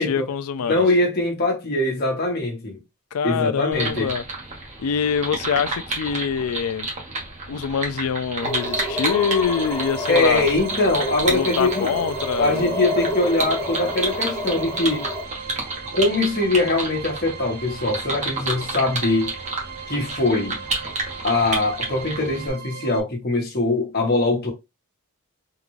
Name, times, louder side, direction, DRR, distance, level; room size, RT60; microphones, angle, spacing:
voice 1, 0.0-0.8 3.1-4.2 4.8-6.9 7.5-10.5 11.2-12.9, left 7 dB, 75° left, 0.4 m, -25 dB
voice 2, 0.7-2.8 3.2-4.1 10.1-11.9 12.4-15.0 15.9-19.3 19.9-20.6 21.2-24.5, left 2 dB, 45° left, 1.3 m, -22 dB
sound 1, 3.7-22.5, right 2 dB, 35° right, 1.1 m, -31 dB
sound 2, 8.4-15.2, left 1 dB, 5° left, 0.6 m, -29 dB
sound 3, 8.8-23.0, right 7 dB, 90° right, 0.6 m, -39 dB
3.7 x 2.5 x 3.1 m
head